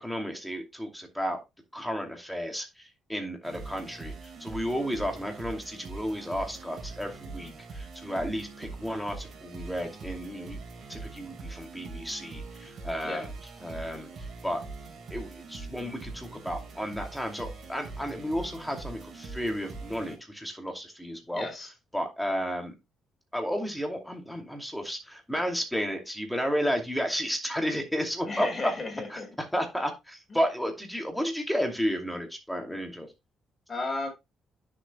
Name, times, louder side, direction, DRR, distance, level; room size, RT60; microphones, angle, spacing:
voice 1, 0.0-1.4 1.7-10.6 10.9-13.3 13.6-14.6 15.1-21.5 21.9-22.7 23.3-28.7 29.1-33.1, equal, ahead, 2.6 m, -32 dB
sound 1, 3.4-20.1, right 3 dB, 55° right, 3.4 m, -43 dB
voice 2, 21.3-21.7 28.2-29.3 33.7-34.1, left 3 dB, 30° left, 4.8 m, -34 dB
11.5 x 7.1 x 2.2 m
cardioid pair, 90°, 0 cm